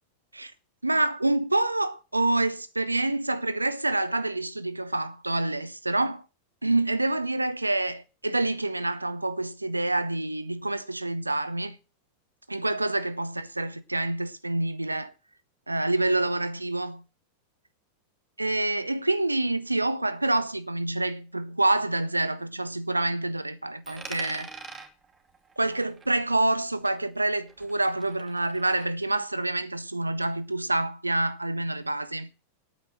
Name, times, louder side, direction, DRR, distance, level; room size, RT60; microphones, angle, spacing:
voice 1, 0.8-6.2 6.6-11.8 12.5-15.1 15.7-17.0 18.4-24.5 25.6-32.3, right 2 dB, 85° right, 0.8 m, -27 dB
Coin (dropping), 23.8-26.6 26.9-28.9, right 4 dB, 15° right, 2.3 m, -45 dB
9.2 x 8.0 x 8.6 m
figure-of-eight pair, 90°, 0 cm